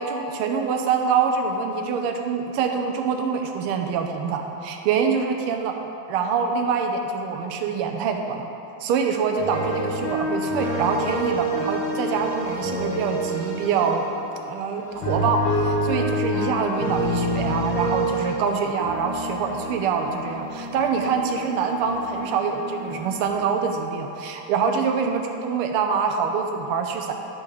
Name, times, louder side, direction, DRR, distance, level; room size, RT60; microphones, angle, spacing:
voice 1, 0.0-5.8 6.1-8.5 8.8-14.1 14.4-27.1, right 5 dB, 85° right, 4 dB, 1.6 m, -25 dB
sound 1, 9.4-14.3 14.8-18.5 18.8-23.6, equal, 65° left, 2.1 m, -28 dB
10.5 x 6.9 x 3.5 m, 2.8 s
omnidirectional pair, 2.4 m